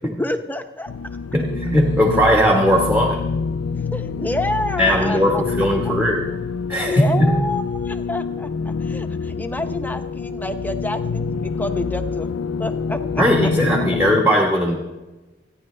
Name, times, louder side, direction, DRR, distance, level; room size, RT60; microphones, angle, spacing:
voice 1, 0.0-0.9 3.9-5.4 5.8-5.9 6.8-12.3 12.6-13.5, left 1 dB, 10° left, 7 dB, 0.8 m, -28 dB
sound 1, 0.9-14.2, left 5 dB, 85° left, 0.4 m, -26 dB
voice 2, 1.3-3.2 4.8-6.3 6.7-7.3 13.2-14.7, equal, 10° right, 0 dB, 1.4 m, -18 dB
28.5 x 10.0 x 3.3 m, 1.1 s
head